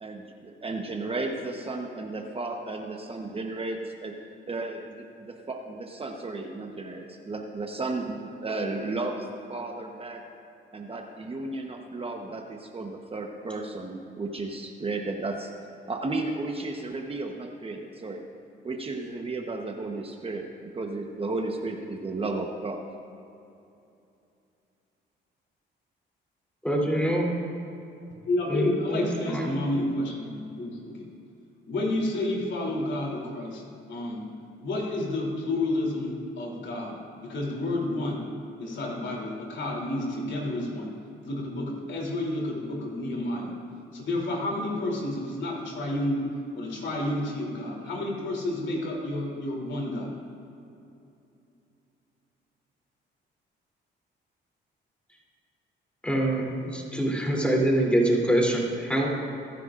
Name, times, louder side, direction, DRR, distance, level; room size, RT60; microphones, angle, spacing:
voice 1, 0.0-4.1 4.5-10.2 10.7-15.5 15.9-18.3 18.6-22.8, right 2 dB, 30° right, 2 dB, 1.1 m, -34 dB
voice 2, 26.6-27.4 28.5-29.6 56.0-59.1, right 1 dB, 5° left, -2 dB, 3.2 m, -25 dB
voice 3, 28.2-30.9 31.7-33.6 33.9-34.2 34.6-38.2 38.6-40.9 41.2-43.5 43.9-46.2 46.5-50.1, left 1 dB, 65° left, -1 dB, 3.2 m, -30 dB
22.5 x 10.5 x 2.5 m, 2.8 s
cardioid pair, 90°, 20 cm